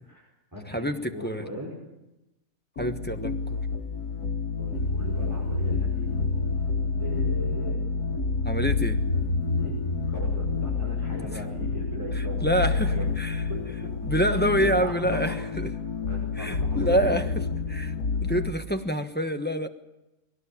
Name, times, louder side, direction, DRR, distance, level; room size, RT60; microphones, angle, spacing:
voice 1, 0.0-1.7 4.6-6.1 7.0-7.8 8.6-8.7 9.6-9.7 10.1-15.3 16.1-17.3, left 1 dB, 10° right, -5 dB, 5.4 m, -39 dB
voice 2, 0.7-1.5 2.8-3.7 8.4-9.0 12.1-13.4 14.0-15.7 16.4-17.3 17.7-17.9 18.2-19.7, equal, 10° left, 6 dB, 1.0 m, -27 dB
sound 1, 2.8-18.5, left 4 dB, 85° left, 1.9 m, -28 dB
21.5 x 18.0 x 8.6 m, 0.97 s
omnidirectional pair, 1.6 m